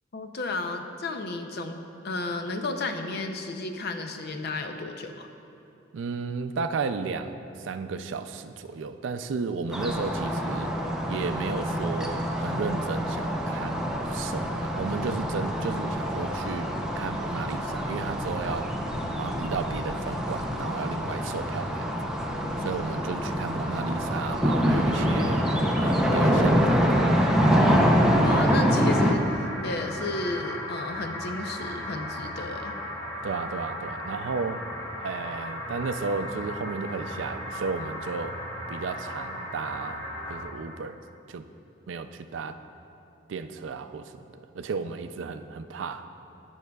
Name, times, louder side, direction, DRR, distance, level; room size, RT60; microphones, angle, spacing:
voice 1, 0.1-1.8 2.0-5.3 28.2-32.8, left 2 dB, 60° left, 6 dB, 0.5 m, -33 dB
voice 2, 5.9-10.7 11.1-16.7 17.0-18.7 19.1-21.9 22.6-25.5 25.8-26.8 33.2-34.6 35.0-38.4 38.7-40.0 40.3-41.0 41.3-41.5 41.9-42.6 43.3-46.1, right 4 dB, 80° right, 9 dB, 0.4 m, -33 dB
sound 1, 9.7-29.1, equal, 5° right, 0.5 m, -25 dB
sound 2, 24.5-40.4, left 1 dB, 20° left, 1.3 m, -37 dB
15.5 x 5.4 x 2.3 m, 2.8 s
head